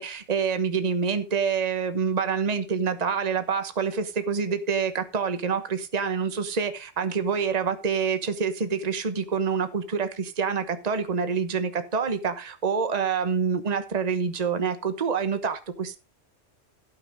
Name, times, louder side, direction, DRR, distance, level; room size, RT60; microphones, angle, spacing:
voice 1, 0.0-16.0, right 6 dB, 40° right, 10 dB, 1.2 m, -27 dB
15.5 x 5.9 x 5.1 m, 0.32 s
omnidirectional pair, 1.1 m